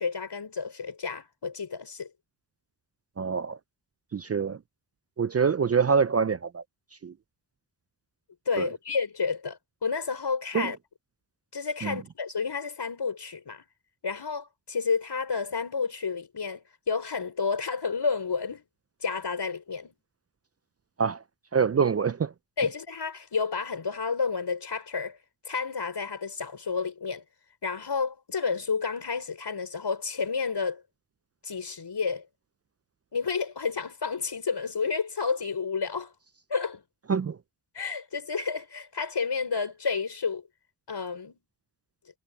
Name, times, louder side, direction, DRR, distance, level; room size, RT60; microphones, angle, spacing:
voice 1, 0.0-2.1 8.5-10.8 11.5-13.6 14.0-18.6 19.0-19.9 22.6-25.2 25.4-27.2 27.6-30.8 31.4-32.3 33.1-36.1 36.5-36.8 37.7-40.4 40.9-41.4, left 5 dB, 65° left, 5.4 m, -30 dB
voice 2, 3.2-3.6 4.1-4.6 5.2-6.6 7.0-7.1 8.6-8.7 10.5-10.7 11.8-12.0 21.0-21.2 21.5-22.3 37.1-37.4, right 6 dB, 35° right, 0.4 m, -25 dB
wide cardioid pair, 75°, 43 cm